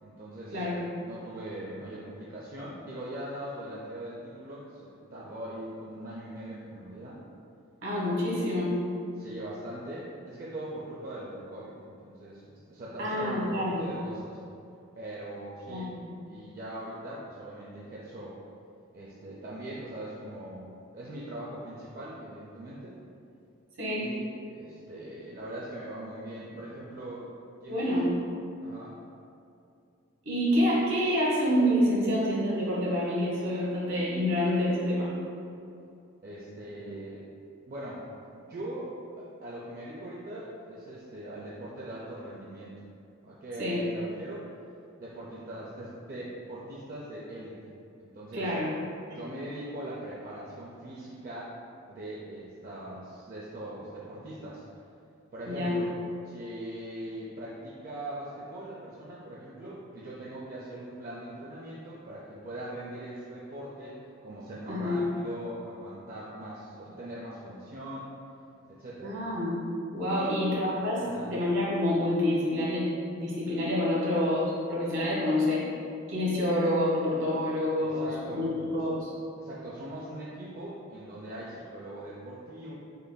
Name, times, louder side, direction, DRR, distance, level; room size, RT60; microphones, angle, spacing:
voice 1, 0.0-7.2 9.2-14.4 14.9-15.9 16.3-18.4 18.9-23.0 24.0-24.2 24.5-27.3 27.6-28.1 28.6-29.0 36.2-37.2 37.7-38.0 38.3-38.9 39.2-42.8 43.2-44.4 45.0-47.7 48.0-48.5 49.1-51.5 51.9-54.6 55.3-55.9 56.2-64.0 64.2-68.1 68.7-69.1 70.1-70.3 70.9-71.3 77.8-78.5 78.8-78.9 79.4-82.7, right 1 dB, 45° right, -6 dB, 0.4 m, -41 dB
voice 2, 7.8-8.8 13.0-13.8 15.7-16.0 23.8-24.0 27.7-28.1 30.2-35.1 43.6-43.8 48.3-48.7 55.4-55.8 64.7-65.0 69.0-69.6 69.9-72.9 73.1-75.6 76.1-79.1, left 1 dB, 65° right, -7 dB, 1.2 m, -27 dB
6.6 x 2.5 x 2.2 m, 2.6 s
head